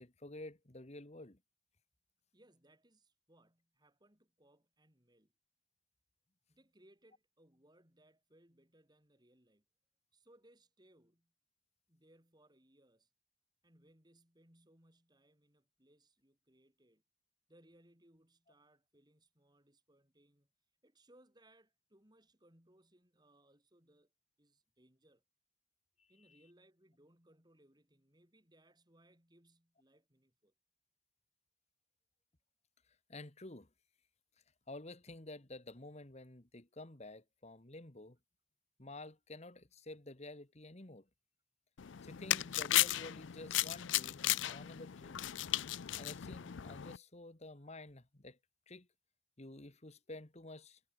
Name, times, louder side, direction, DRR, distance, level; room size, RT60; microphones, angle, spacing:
voice 1, 0.0-1.4 33.1-33.7 34.7-38.2 38.8-41.1 42.0-45.2 46.0-48.4 48.7-48.9 49.4-50.8, left 2 dB, 35° left, 1.8 m, -51 dB
voice 2, 2.3-5.3 6.5-9.6 10.1-11.3 11.9-13.1 13.6-17.0 17.5-20.5 20.8-24.1 24.4-25.2 26.1-30.5, right 1 dB, 25° right, 6.2 m, -68 dB
sound 1, 41.8-47.0, left 14 dB, 85° left, 0.5 m, -35 dB
head